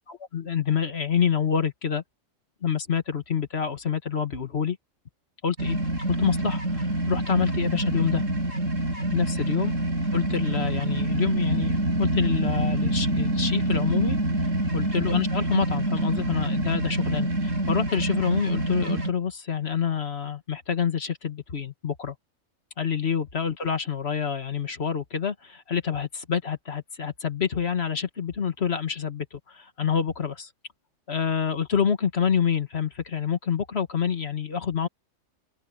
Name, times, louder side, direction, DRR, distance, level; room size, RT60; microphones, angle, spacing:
voice 1, 0.1-2.0 2.6-4.8 5.4-5.8 6.1-8.3 9.1-9.7 10.1-14.2 14.7-22.2 22.8-30.5 31.1-34.9, left 7 dB, 55° left, 1.8 m, -27 dB
sound 1, 5.6-19.1, right 1 dB, 70° right, 6.9 m, -26 dB
open air
omnidirectional pair, 1.4 m